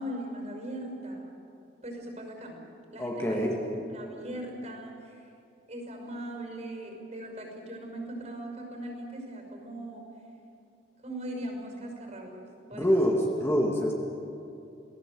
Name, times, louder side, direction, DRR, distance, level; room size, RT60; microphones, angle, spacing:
voice 1, 0.0-1.4 1.8-2.6 2.9-5.2 5.7-10.0 11.0-13.0, right 1 dB, 40° right, 2 dB, 5.8 m, -39 dB
voice 2, 3.0-3.6 12.7-13.9, equal, 15° left, -1 dB, 2.2 m, -26 dB
28.5 x 18.5 x 7.8 m, 2.6 s
head